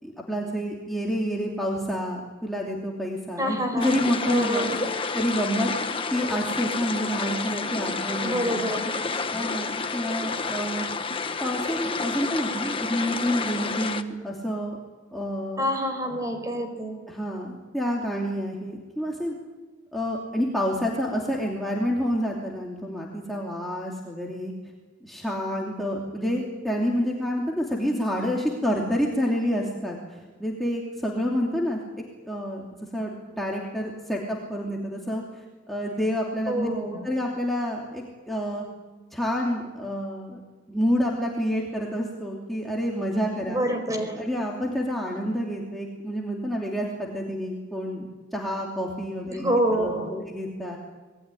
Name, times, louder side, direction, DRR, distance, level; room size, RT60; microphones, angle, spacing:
voice 1, 0.0-4.7 5.1-5.7 6.1-8.7 9.3-10.9 11.4-14.8 15.1-15.6 17.1-19.4 19.9-24.5 25.0-31.8 32.2-32.6 32.9-36.7 37.0-38.6 39.1-40.4 40.7-43.6 44.2-48.1 48.3-49.5 49.7-50.8, equal, ahead, -3 dB, 2.9 m, -28 dB
voice 2, 3.4-4.9 8.2-8.9 15.6-17.0 36.5-37.1 43.5-44.2 49.3-50.3, right 1 dB, 15° right, 6 dB, 4.8 m, -27 dB
sound 1, 3.8-14.0, left 4 dB, 30° left, 1.3 m, -30 dB
27.0 x 20.5 x 9.9 m, 1.3 s
head